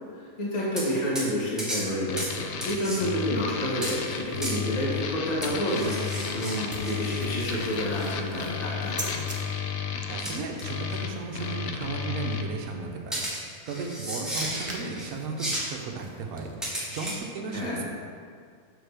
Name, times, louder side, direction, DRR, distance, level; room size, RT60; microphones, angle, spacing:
voice 1, 0.1-9.2 17.5-17.8, equal, 30° left, -5 dB, 1.2 m, -29 dB
sound 1, 0.8-0.9 1.2-1.3 1.6-1.9 2.2-2.3 2.6-3.0 3.8-4.0 4.4-4.6 5.4-7.7 8.0-8.1 10.3-10.6 10.9-11.0 13.1-15.1 15.4-15.7 16.6-17.2, equal, ahead, 1.0 m, -34 dB
sound 2, 2.1-12.4, left 6 dB, 70° left, 0.7 m, -33 dB
sound 3, 5.7-9.4 13.5-16.9, right 1 dB, 25° right, 0.3 m, -43 dB
voice 2, 10.1-17.8, right 4 dB, 70° right, 2 dB, 1.2 m, -35 dB
6.4 x 6.1 x 3.4 m, 2.1 s
omnidirectional pair, 1.6 m